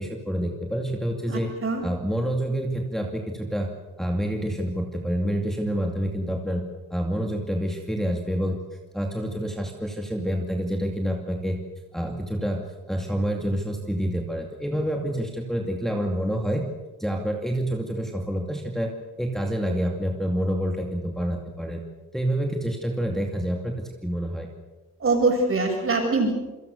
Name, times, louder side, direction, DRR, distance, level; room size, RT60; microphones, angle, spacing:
voice 1, 0.0-1.5 1.8-3.7 4.0-6.6 6.9-8.6 8.9-11.6 11.9-16.6 17.0-18.9 19.2-21.8 22.1-23.7 24.0-24.5, equal, ahead, 0 dB, 2.4 m, -27 dB
voice 2, 1.3-1.8 25.0-26.3, right 3 dB, 40° right, 2 dB, 7.9 m, -23 dB
28.0 x 24.5 x 6.8 m, 1.1 s
wide cardioid pair, 160°, 32 cm